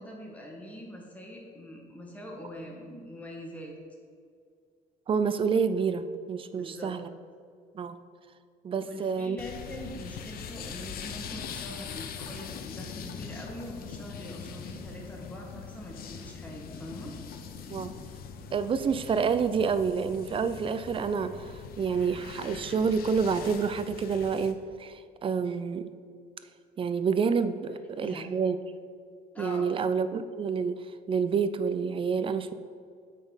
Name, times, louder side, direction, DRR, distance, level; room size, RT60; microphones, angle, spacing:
voice 1, 0.0-3.7 6.5-6.9 8.8-17.2 28.0-28.3 29.3-29.7, left 1 dB, 10° left, -1 dB, 1.8 m, -43 dB
voice 2, 5.1-7.1 7.7-8.0 8.6-9.4 17.7-17.9 18.5-25.9 26.8-28.6 29.4-30.8 31.1-32.5, right 5 dB, 30° right, 12 dB, 0.5 m, -28 dB
sound 1, 9.4-24.5, left 6 dB, 60° left, 0.7 m, -42 dB
8.7 x 4.2 x 5.5 m, 2.2 s
cardioid pair, 110°, 17 cm